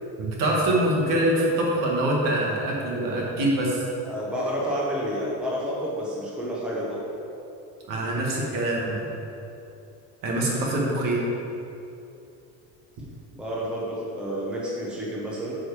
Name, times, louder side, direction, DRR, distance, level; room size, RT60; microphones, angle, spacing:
voice 1, 0.2-3.8 7.9-9.1 10.2-11.2, right 1 dB, 55° right, -2 dB, 1.8 m, -24 dB
voice 2, 4.0-7.1 13.3-15.5, equal, 5° right, -5 dB, 0.8 m, -30 dB
9.0 x 4.8 x 4.9 m, 2.8 s
cardioid pair, 170°, 39 cm